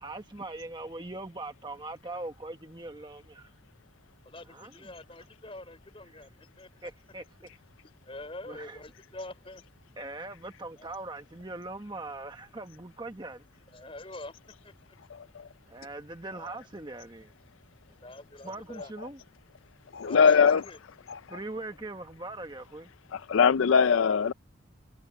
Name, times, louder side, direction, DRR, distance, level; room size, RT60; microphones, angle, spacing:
voice 1, 0.0-3.5 4.5-4.7 6.1-6.3 6.8-7.2 8.5-8.8 10.0-13.4 15.7-17.3 18.4-19.2 21.3-22.9, right 2 dB, 20° right, 1.1 m, -41 dB
voice 2, 4.2-6.9 7.8-9.6 10.8-11.0 13.5-15.0 16.3-16.6 18.0-18.9 20.0-20.8, left 2 dB, 25° left, 4.9 m, -45 dB
voice 3, 19.9-20.6 21.1-21.4 23.1-24.3, left 6 dB, 75° left, 0.4 m, -22 dB
head